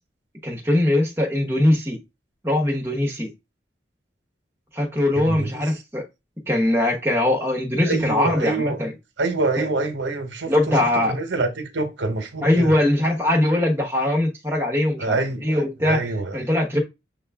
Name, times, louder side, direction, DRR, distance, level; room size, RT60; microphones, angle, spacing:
voice 1, 0.4-2.0 2.4-3.3 4.7-6.0 6.5-8.9 9.6-9.7 10.5-11.2 12.4-16.0 16.3-16.8, left 1 dB, 15° right, 0.9 m, -21 dB
voice 2, 5.2-5.6 7.8-8.8 9.2-12.8 15.0-16.4, right 3 dB, 75° right, 1.0 m, -26 dB
6.5 x 2.3 x 3.4 m
head